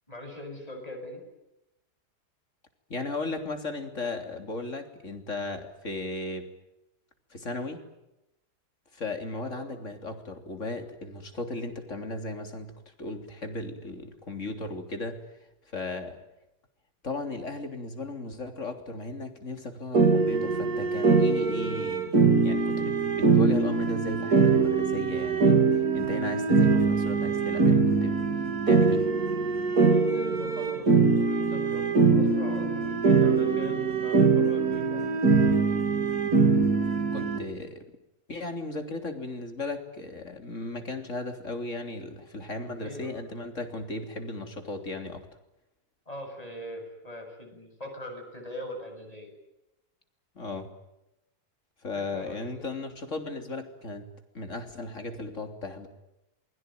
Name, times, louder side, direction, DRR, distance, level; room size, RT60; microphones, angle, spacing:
voice 1, 0.1-1.2 9.4-9.7 29.9-35.1 42.8-43.2 46.1-49.3 51.9-52.7, left 1 dB, 20° left, 3 dB, 8.0 m, -42 dB
voice 2, 2.9-6.5 7.3-7.9 8.9-12.7 13.0-15.2 15.7-16.2 17.0-22.1 22.4-25.7 25.9-28.2 28.7-29.1 37.1-37.9 38.3-45.3 50.4-50.7 51.8-55.9, left 2 dB, 45° left, 5 dB, 3.7 m, -36 dB
sound 1, 19.9-37.4, right 4 dB, 70° right, 3.1 m, -23 dB
28.0 x 22.0 x 9.3 m, 0.91 s
omnidirectional pair, 1.7 m